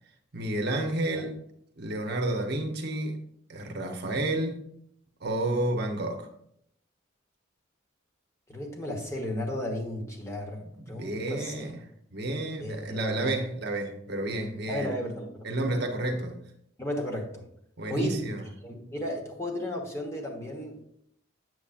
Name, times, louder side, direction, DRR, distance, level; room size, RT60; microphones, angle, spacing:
voice 1, 0.3-1.4 1.8-3.2 3.5-4.6 5.2-6.3 10.9-11.8 12.1-14.9 15.4-16.4 17.8-18.4, right 1 dB, 55° right, 3 dB, 0.9 m, -30 dB
voice 2, 8.5-11.6 12.6-13.3 14.7-15.3 16.8-17.4 17.9-18.2 18.6-20.8, left 1 dB, 15° left, 0 dB, 1.2 m, -34 dB
7.7 x 7.1 x 2.5 m, 0.71 s
head